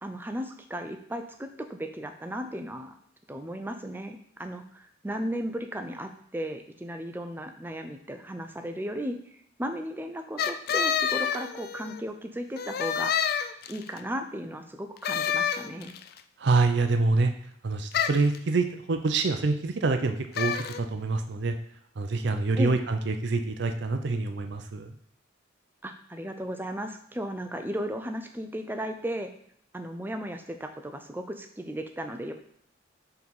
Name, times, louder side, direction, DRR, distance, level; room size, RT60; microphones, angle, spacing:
voice 1, 0.0-2.9 3.3-9.2 9.6-13.3 13.7-15.9 22.6-22.8 25.8-29.3 29.7-32.3, equal, 10° right, 6 dB, 0.5 m, -35 dB
sound 1, 10.4-12.0 12.6-14.0 15.0-16.1 17.9-18.4 20.4-20.8, left 7 dB, 50° left, 0.3 m, -28 dB
voice 2, 16.4-17.3 17.6-21.6 22.0-25.0, right 3 dB, 60° right, 7 dB, 0.5 m, -26 dB
4.7 x 3.9 x 5.4 m, 0.68 s
head